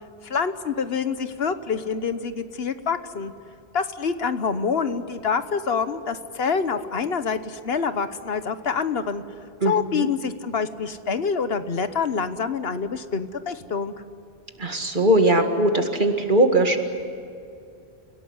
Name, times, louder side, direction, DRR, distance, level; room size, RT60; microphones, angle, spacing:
voice 1, 0.2-3.3 3.7-9.2 9.6-13.9, left 5 dB, 70° left, 11 dB, 1.3 m, -26 dB
voice 2, 9.6-10.1 14.6-16.8, right 1 dB, 50° right, 5 dB, 2.2 m, -20 dB
29.5 x 17.0 x 9.7 m, 2.5 s
omnidirectional pair, 1.1 m